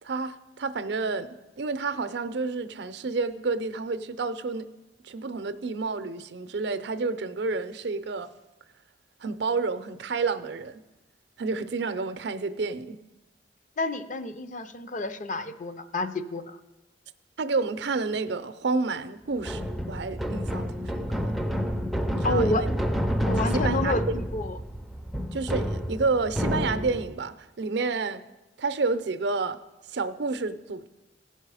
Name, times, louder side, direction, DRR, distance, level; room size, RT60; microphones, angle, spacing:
voice 1, 0.0-4.7 5.0-8.3 9.2-10.8 11.4-13.0 17.4-21.3 22.1-22.7 23.5-24.2 25.3-28.2 28.6-29.6 29.9-30.9, right 4 dB, 65° right, 12 dB, 0.5 m, -30 dB
voice 2, 13.8-16.6 22.2-22.6 23.3-24.6, left 2 dB, 45° left, 11 dB, 0.6 m, -29 dB
sound 1, 19.4-27.2, equal, ahead, 0.4 m, -29 dB
16.5 x 5.6 x 4.8 m, 1.0 s
head